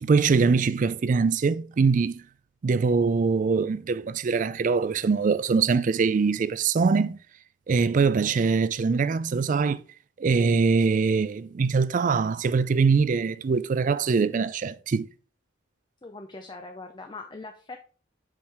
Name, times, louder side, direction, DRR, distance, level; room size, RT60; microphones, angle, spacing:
voice 1, 0.0-2.2 2.6-7.2 7.7-9.8 10.2-15.1, right 5 dB, 40° right, 0.3 m, -23 dB
voice 2, 16.0-17.8, left 3 dB, 25° left, 0.5 m, -41 dB
7.2 x 4.9 x 3.4 m
head